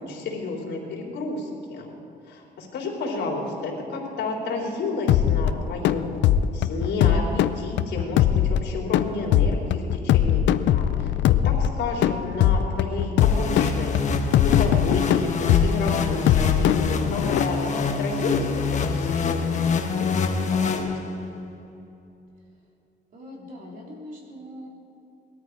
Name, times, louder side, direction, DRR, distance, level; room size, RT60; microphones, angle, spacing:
voice 1, 0.0-1.9 2.3-6.1 6.5-11.1 11.4-13.9 14.4-18.5 18.9-20.8, left 2 dB, 70° left, -2 dB, 3.8 m, -31 dB
sound 1, 5.1-17.4, left 10 dB, 90° left, 0.5 m, -22 dB
sound 2, 13.2-21.4, left 5 dB, 40° left, 1.1 m, -26 dB
voice 2, 23.1-24.7, equal, 50° right, -2 dB, 3.1 m, -41 dB
20.5 x 13.5 x 4.7 m, 2.9 s
cardioid pair, 170°, 18 cm